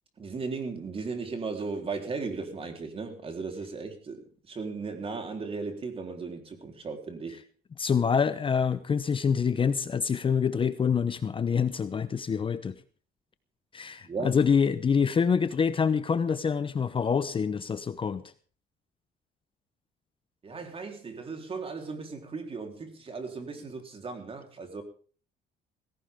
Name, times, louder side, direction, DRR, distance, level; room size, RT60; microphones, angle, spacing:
voice 1, 0.2-7.4 14.1-14.3 20.4-24.8, right 4 dB, 35° right, 4 dB, 3.9 m, -36 dB
voice 2, 7.8-12.8 13.7-18.2, left 6 dB, 30° left, 13 dB, 0.9 m, -26 dB
17.5 x 16.5 x 3.7 m, 0.40 s
cardioid pair, 110°, 17 cm